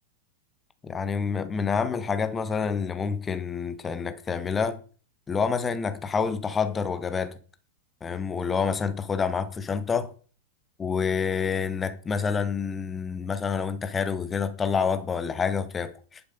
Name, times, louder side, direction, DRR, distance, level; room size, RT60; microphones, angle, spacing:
voice 1, 0.8-4.8 5.3-7.3 8.0-10.1 10.8-16.2, left 6 dB, 20° left, 1.2 m, -28 dB
11.0 x 7.8 x 5.6 m
figure-of-eight pair, 90°, 0 cm